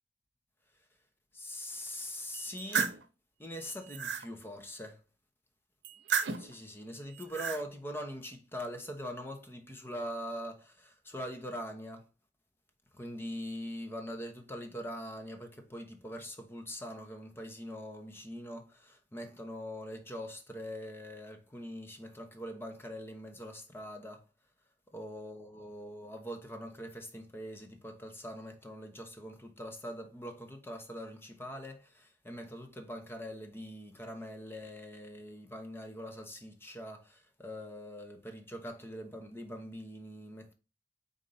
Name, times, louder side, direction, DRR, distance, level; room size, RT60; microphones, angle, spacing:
voice 1, 1.3-3.0 3.4-5.0 6.4-12.1 12.9-24.2 24.9-40.5, equal, 15° left, 0.9 m, -43 dB
sound 1, 2.3-3.0 3.6-4.3 5.8-6.5 7.1-7.6, right 6 dB, 80° right, 0.8 m, -33 dB
4.5 x 3.9 x 5.5 m
head